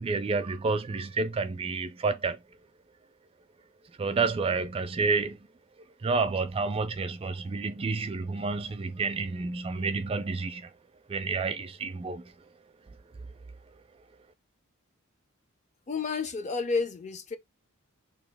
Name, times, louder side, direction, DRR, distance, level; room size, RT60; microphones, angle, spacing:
voice 1, 0.0-2.4 4.0-5.4 6.0-10.7 11.1-12.3, right 4 dB, 25° right, 0.3 m, -29 dB
voice 2, 15.9-17.4, left 4 dB, 35° left, 0.4 m, -30 dB
2.9 x 2.3 x 3.4 m
head